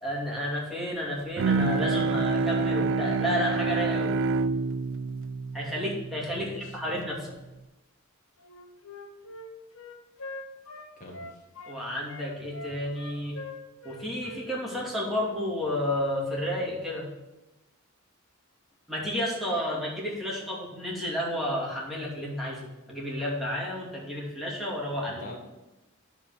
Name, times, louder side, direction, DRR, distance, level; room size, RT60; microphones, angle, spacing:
voice 1, 0.0-4.2 5.5-7.2 11.6-13.4 13.8-17.1 18.9-25.2, equal, ahead, -5 dB, 2.4 m, -31 dB
Bowed string instrument, 1.4-6.8, right 4 dB, 60° right, 0.4 m, -27 dB
voice 2, 6.3-7.1 11.0-11.4 25.1-25.4, left 2 dB, 35° left, -2 dB, 1.4 m, -43 dB
Wind instrument woodwind instrument, 8.4-11.8 12.1-15.4, left 2 dB, 75° left, 1.2 m, -43 dB
11.0 x 4.1 x 6.5 m, 1.0 s
head